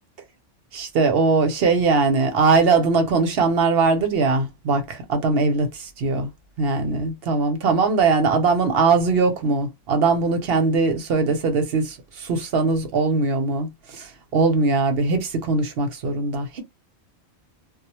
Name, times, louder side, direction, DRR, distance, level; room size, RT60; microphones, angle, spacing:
voice 1, 0.7-6.3 6.6-16.6, right 4 dB, 60° right, 0.8 m, -21 dB
2.2 x 2.1 x 2.8 m
omnidirectional pair, 1.3 m